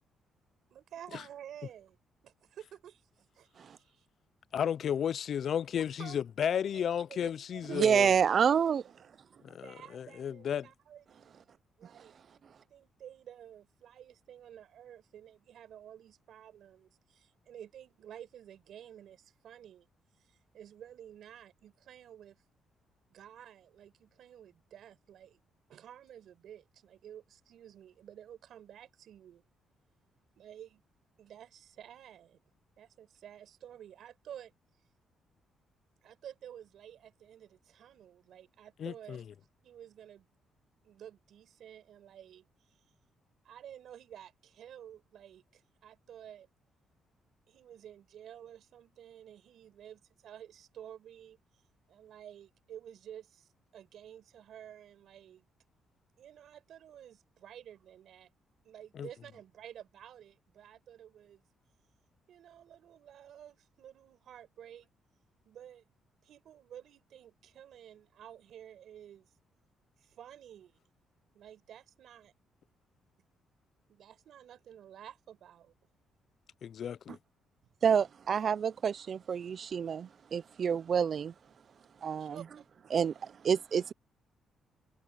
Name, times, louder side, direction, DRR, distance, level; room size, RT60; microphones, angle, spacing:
voice 1, 0.7-2.0 2.2-4.1 6.0-8.6 9.6-12.1 12.7-19.9 20.1-22.4 23.1-25.4 25.7-29.4 30.3-30.8 31.2-32.4 32.8-34.5 36.0-39.2 39.6-40.3 40.8-42.8 43.4-46.5 47.5-51.4 51.9-55.5 56.2-58.3 58.6-61.4 62.3-64.9 65.4-65.9 66.2-69.3 70.0-70.8 71.3-72.3 73.9-75.7 82.2-82.7, right 10 dB, 65° right, 5.0 m, -52 dB
voice 2, 4.5-8.1 9.4-10.7 38.8-39.2 59.0-59.1 76.6-77.2, left 8 dB, 55° left, 0.4 m, -33 dB
voice 3, 7.7-8.8 77.8-81.3 82.0-82.4 82.9-83.9, right 7 dB, 45° right, 0.3 m, -28 dB
cardioid pair, 145°, 0 cm